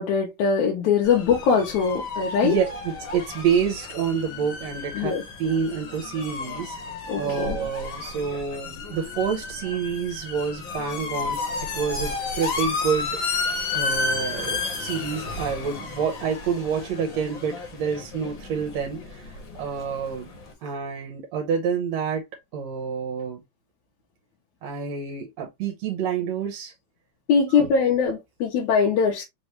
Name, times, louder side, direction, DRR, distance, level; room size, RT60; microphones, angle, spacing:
voice 1, 0.0-2.6 5.0-5.2 7.1-7.6 27.3-29.2, left 6 dB, 80° left, 2.3 m, -22 dB
sound 1, 1.0-20.5, left 4 dB, 50° left, 1.7 m, -32 dB
voice 2, 2.4-6.8 7.2-11.4 11.7-13.2 13.7-20.3 20.6-22.3 22.5-23.4 24.6-26.7 27.5-27.7, right 6 dB, 70° right, 2.0 m, -28 dB
5.2 x 3.1 x 3.1 m
omnidirectional pair, 3.4 m